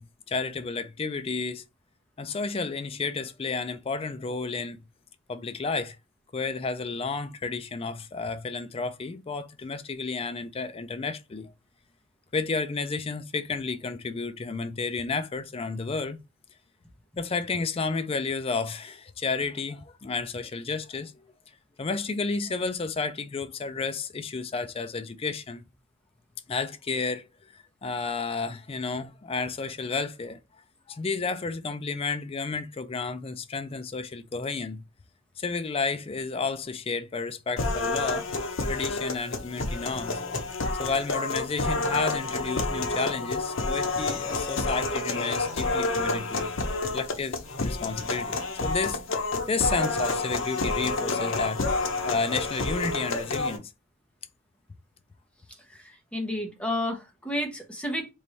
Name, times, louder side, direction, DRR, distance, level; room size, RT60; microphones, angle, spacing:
voice 1, 0.0-1.6 2.2-4.8 5.3-6.0 6.3-11.5 12.3-16.2 17.2-21.3 21.8-25.6 26.5-27.3 27.5-30.4 30.9-34.8 35.4-38.3 38.7-40.2 40.8-46.5 46.9-49.0 49.5-51.6 52.0-53.7, left 4 dB, 30° left, 0.4 m, -31 dB
sound 1, 37.6-53.6, left 3 dB, 85° left, 0.7 m, -29 dB
voice 2, 55.7-58.1, left 1 dB, 5° left, 0.9 m, -31 dB
3.2 x 2.6 x 4.2 m
head